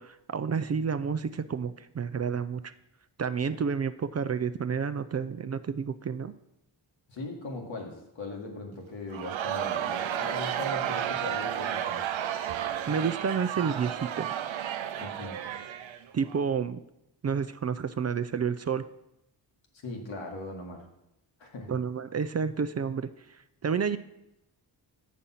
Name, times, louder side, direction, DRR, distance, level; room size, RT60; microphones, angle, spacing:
voice 1, 0.0-2.6 3.2-6.3 12.9-14.3 16.1-16.8 17.2-18.8 21.7-23.1 23.6-24.0, right 6 dB, 35° right, 12 dB, 0.4 m, -30 dB
voice 2, 7.1-12.1 15.0-15.4 19.7-20.9 21.4-21.8, left 2 dB, 80° left, 1 dB, 1.7 m, -39 dB
Crowd, 9.1-16.4, right 10 dB, 85° right, 0.6 m, -32 dB
7.1 x 5.2 x 5.6 m, 0.87 s
cardioid pair, 55°, 45 cm